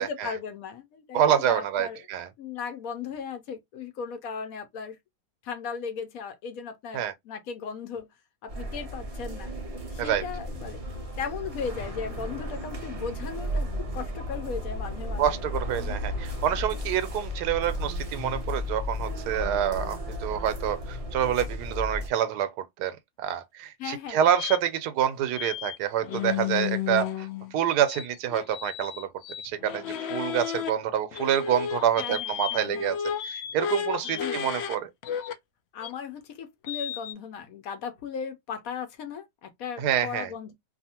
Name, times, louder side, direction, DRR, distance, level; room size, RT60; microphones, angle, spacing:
voice 1, 0.0-2.1 2.4-5.0 5.4-8.1 8.4-9.5 9.9-15.4 15.8-15.9 23.8-24.2 32.0-32.9 34.0-34.5 35.7-40.5, left 6 dB, 70° left, 1.0 m, -37 dB
voice 2, 1.1-2.3 6.9-7.1 10.0-10.2 15.2-29.1 29.4-33.0 33.2-34.9 39.8-40.3, right 10 dB, 85° right, 1.1 m, -27 dB
sound 1, 8.5-22.1, left 1 dB, 60° right, 0.3 m, -34 dB
sound 2, 24.4-24.6 25.3-25.8 26.0-27.5 27.9-30.7 31.1-34.8 35.0-35.3 35.8-35.9 36.6-37.1, left 9 dB, 85° left, 0.5 m, -32 dB
2.7 x 2.4 x 2.8 m
omnidirectional pair, 1.7 m